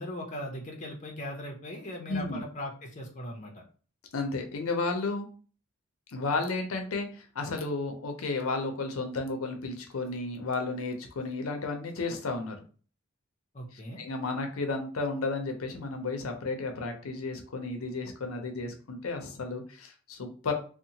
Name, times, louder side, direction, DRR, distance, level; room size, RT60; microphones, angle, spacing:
voice 1, 0.0-3.6 13.5-14.0, left 1 dB, 35° left, 0 dB, 0.5 m, -39 dB
voice 2, 2.1-2.4 4.1-5.3 6.1-12.6 14.0-20.5, left 3 dB, 90° left, 5 dB, 0.6 m, -33 dB
2.8 x 2.1 x 2.7 m, 0.39 s
head